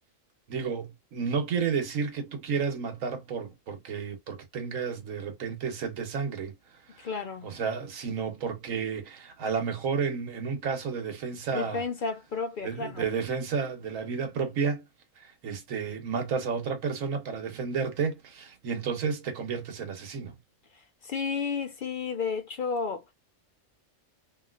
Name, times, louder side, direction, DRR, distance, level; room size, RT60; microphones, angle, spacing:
voice 1, 0.5-6.5 6.9-7.1 7.4-11.8 12.6-14.8 15.2-20.3, right 6 dB, 85° right, 1.3 m, -31 dB
voice 2, 7.0-7.5 11.5-13.1 20.7-23.0, left 5 dB, 55° left, 0.6 m, -32 dB
3.1 x 2.7 x 2.4 m
omnidirectional pair, 1.4 m